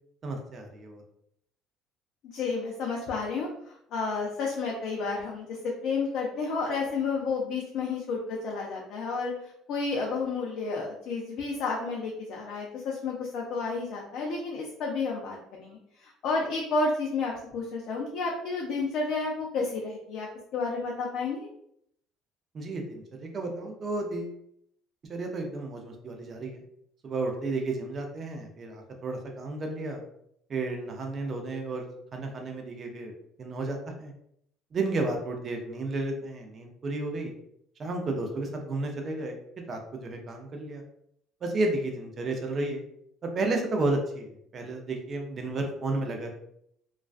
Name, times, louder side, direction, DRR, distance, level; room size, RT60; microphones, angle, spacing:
voice 1, 0.2-1.0 22.5-24.4 25.1-26.6 27.0-30.0 30.5-31.8 32.1-33.1 33.4-34.1 34.7-37.3 37.8-39.4 39.7-40.8 41.4-42.8 43.2-46.3, right 2 dB, 40° right, 3 dB, 0.5 m, -32 dB
voice 2, 2.3-21.5, left 4 dB, 65° left, -2 dB, 0.4 m, -31 dB
2.4 x 2.2 x 2.3 m, 0.72 s
cardioid pair, 115°, 0 cm